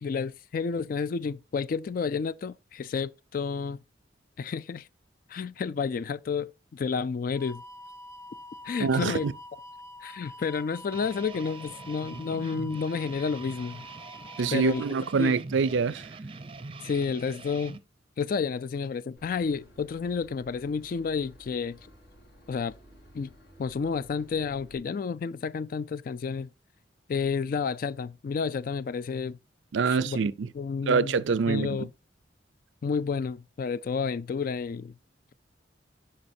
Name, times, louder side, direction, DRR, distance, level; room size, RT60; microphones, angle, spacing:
voice 1, 0.0-3.8 4.4-4.9 5.3-7.6 8.6-9.2 10.0-13.8 14.5-14.8 15.2-15.3 16.8-17.8 18.2-21.8 22.5-22.7 23.1-23.3 23.6-26.5 27.1-29.4 29.8-30.2 30.5-31.2 31.5-31.9 32.8-34.9, left 5 dB, 50° left, 0.3 m, -30 dB
sound 1, 7.3-14.9, left 1 dB, 15° left, 0.7 m, -46 dB
voice 2, 8.8-9.3 14.4-16.1 29.7-30.5 30.9-31.9, right 5 dB, 80° right, 0.4 m, -25 dB
sound 2, 10.9-17.8, right 3 dB, 30° right, 0.5 m, -44 dB
Boat Water vehicle / Engine, 19.2-24.8, equal, 75° left, 4.5 m, -54 dB
11.5 x 4.9 x 2.7 m
head